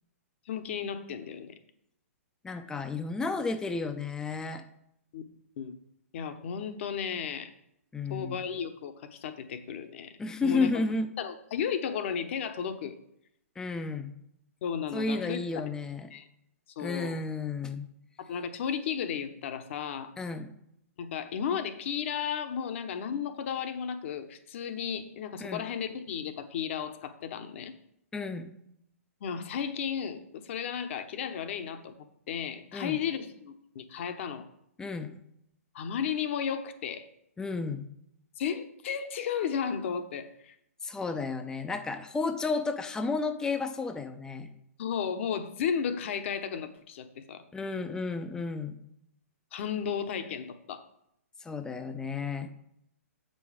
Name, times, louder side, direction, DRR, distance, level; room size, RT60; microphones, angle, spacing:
voice 1, 0.5-1.5 5.1-5.2 5.6-5.7 6.1-7.5 8.1-10.1 10.4-10.8 11.2-13.0 14.6-15.4 16.1-16.3 16.8-17.2 18.2-20.1 21.0-27.7 29.2-31.9 32.3-34.4 35.7-37.1 38.4-40.5 44.8-47.4 49.5-50.8, left 7 dB, 55° left, 9 dB, 0.9 m, -34 dB
voice 2, 2.4-4.6 7.9-8.4 10.2-11.1 13.6-14.1 14.9-16.1 16.8-17.9 20.2-20.5 25.4-25.6 28.1-28.6 32.7-33.0 34.8-35.1 37.4-37.9 40.8-44.5 47.5-48.8 51.4-52.5, left 4 dB, 10° left, 7 dB, 0.5 m, -32 dB
7.6 x 5.3 x 5.0 m, 0.76 s
hypercardioid pair, 125°, 8 cm